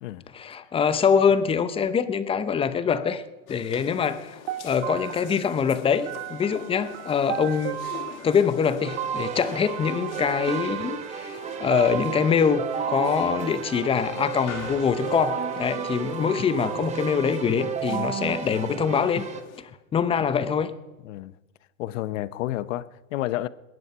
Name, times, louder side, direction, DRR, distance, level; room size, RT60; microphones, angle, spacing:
voice 1, 0.3-3.2 3.5-4.4 4.6-7.8 8.2-19.2 19.9-20.7, left 7 dB, 15° left, 0.7 m, -24 dB
sound 1, 3.5-19.6, left 8 dB, 80° left, 3.1 m, -44 dB
sound 2, 4.5-15.8, right 11 dB, 50° right, 1.2 m, -36 dB
Keyboard (musical), 8.8-19.4, right 7 dB, 15° right, 0.9 m, -33 dB
voice 2, 21.8-23.5, left 15 dB, 65° left, 0.9 m, -30 dB
22.0 x 11.0 x 5.5 m
supercardioid pair, 140°, 41 cm